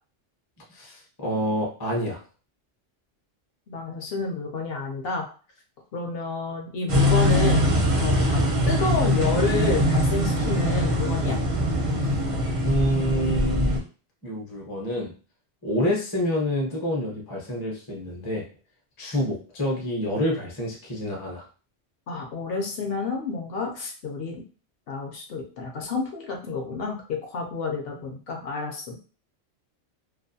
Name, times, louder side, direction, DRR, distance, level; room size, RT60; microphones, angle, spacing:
voice 1, 0.7-2.2 12.0-12.2 12.6-13.8 14.2-15.1 15.6-18.4 19.0-21.4, equal, 25° left, -2 dB, 0.6 m, -27 dB
voice 2, 3.7-5.3 5.9-7.6 8.0-11.4 22.1-24.4 24.9-29.0, left 4 dB, 60° left, 1 dB, 0.7 m, -29 dB
sound 1, 6.9-13.8, equal, 45° right, 0.4 m, -22 dB
2.4 x 2.2 x 2.6 m, 0.37 s
omnidirectional pair, 1.3 m